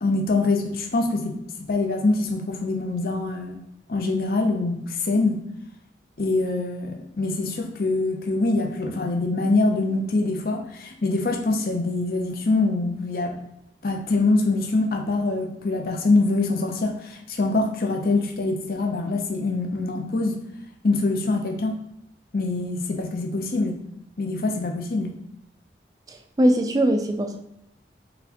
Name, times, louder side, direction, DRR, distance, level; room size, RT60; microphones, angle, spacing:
voice 1, 0.0-1.4 1.7-3.6 3.9-5.4 6.2-13.3 13.8-20.4 20.8-21.8 22.3-23.8 24.2-25.1, left 2 dB, 55° left, 2 dB, 0.6 m, -24 dB
voice 2, 26.4-27.4, right 1 dB, 20° right, 5 dB, 0.3 m, -20 dB
4.0 x 3.4 x 2.8 m, 0.83 s
head